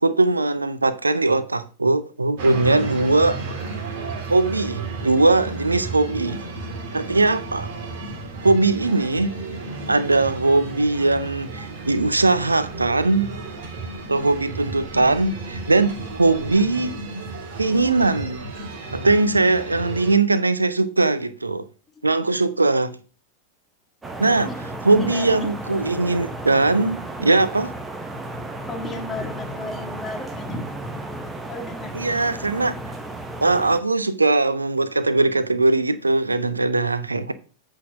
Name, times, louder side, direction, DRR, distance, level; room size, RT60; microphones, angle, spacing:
voice 1, 0.0-3.4 4.3-6.4 6.9-7.7 8.4-9.3 9.9-13.3 14.1-17.0 17.6-18.5 18.9-21.7 22.0-23.0 24.2-24.5 24.8-27.7 31.9-32.7 33.4-37.3, right 3 dB, 80° right, 0.6 m, -20 dB
sound 1, 2.4-20.2, right 3 dB, 50° right, 1.9 m, -33 dB
sound 2, 24.0-33.8, right 2 dB, 10° right, 1.1 m, -34 dB
voice 2, 24.9-25.4 28.7-30.6 31.5-32.0, left 2 dB, 15° left, 1.8 m, -33 dB
8.3 x 3.8 x 6.1 m
figure-of-eight pair, 90°, 0 cm